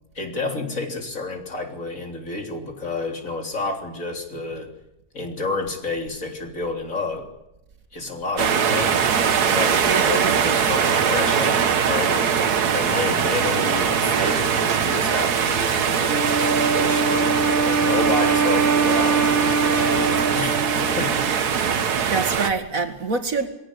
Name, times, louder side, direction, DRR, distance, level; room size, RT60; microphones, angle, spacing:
voice 1, 0.2-4.7 5.1-7.3 7.9-9.0 9.4-12.3 12.7-20.6 21.0-21.1, left 3 dB, 55° left, 3.9 m, -30 dB
sound 1, 8.4-22.5, right 7 dB, 80° right, 1.8 m, -21 dB
voice 2, 9.9-10.4 12.4-12.6 22.1-23.5, right 4 dB, 60° right, 2.4 m, -26 dB
Wind instrument woodwind instrument, 16.1-21.5, right 4 dB, 35° right, 1.8 m, -23 dB
22.0 x 17.5 x 9.8 m
omnidirectional pair, 1.7 m